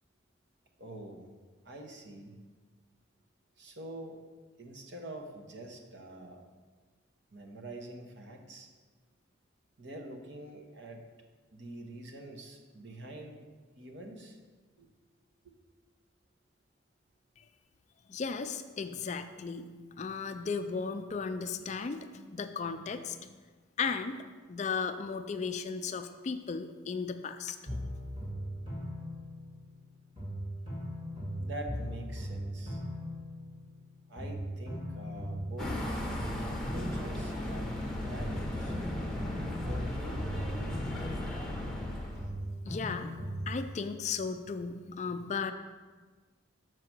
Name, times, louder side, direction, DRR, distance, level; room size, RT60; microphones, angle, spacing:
voice 1, 0.8-1.3 1.6-2.4 3.6-4.2 4.6-6.4 7.3-8.7 9.8-11.0 11.5-13.4 13.8-14.4 14.8-14.9 15.4-15.5 31.4-32.8 34.1-35.8 36.5-38.8 39.6-40.3, right 1 dB, 60° right, 2 dB, 1.0 m, -45 dB
voice 2, 18.1-19.7 20.0-23.4 23.8-27.6 42.7-43.1 43.5-45.5, left 5 dB, 35° left, 9 dB, 0.3 m, -35 dB
sound 1, 27.7-29.8 30.2-33.9 34.2-37.8 38.2-41.9 42.2-43.7, equal, 25° right, 2.3 m, -39 dB
sound 2, 35.6-42.3, left 1 dB, 5° left, 0.8 m, -36 dB
6.6 x 4.6 x 6.0 m, 1.4 s
head